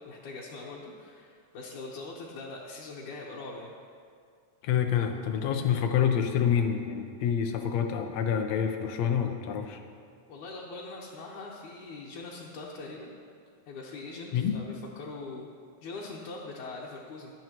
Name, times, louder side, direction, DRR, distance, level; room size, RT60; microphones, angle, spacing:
voice 1, 0.1-3.7 10.3-13.1 13.7-15.5 15.8-17.3, left 3 dB, 85° left, -5 dB, 2.7 m, -42 dB
voice 2, 4.6-9.8 14.3-14.6, left 8 dB, 70° left, 5 dB, 2.0 m, -27 dB
23.5 x 9.2 x 3.0 m, 2.1 s
omnidirectional pair, 3.4 m